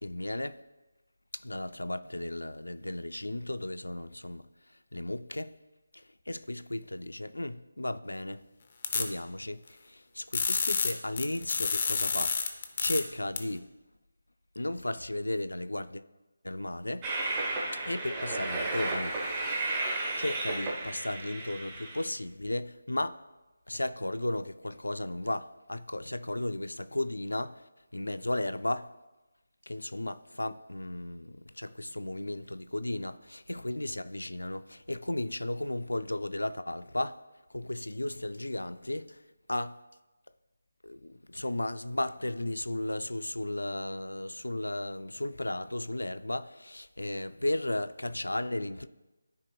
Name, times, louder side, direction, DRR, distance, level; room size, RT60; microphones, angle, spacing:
voice 1, 0.0-0.6 1.3-4.5 4.9-5.5 5.9-8.5 8.9-12.4 12.8-13.7 14.6-16.0 16.4-17.1 17.7-19.2 19.5-19.7 20.2-23.2 23.7-27.6 27.9-28.9 29.7-37.2 37.5-39.2 39.5-39.8 40.8-48.9, left 1 dB, 85° left, 0.4 m, -35 dB
sound 1, 8.8-9.0 10.3-13.0 13.4-13.5, left 5 dB, 40° left, 0.7 m, -29 dB
Train, 17.0-22.0, right 2 dB, 20° right, 1.1 m, -33 dB
13.0 x 4.4 x 2.3 m
figure-of-eight pair, 160°, 0 cm